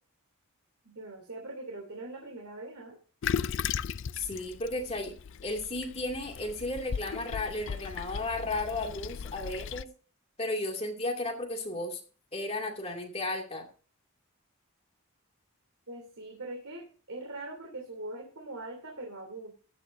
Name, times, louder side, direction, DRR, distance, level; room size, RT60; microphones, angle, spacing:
voice 1, 0.8-3.0 15.9-19.5, right 2 dB, 75° right, 1 dB, 3.0 m, -42 dB
Toilet flush, 3.2-9.8, left 7 dB, 55° left, 0.4 m, -36 dB
voice 2, 4.1-5.1 5.4-9.9 10.4-12.0 12.3-13.7, left 2 dB, 25° left, 2 dB, 2.5 m, -34 dB
15.0 x 11.0 x 2.7 m, 0.40 s
head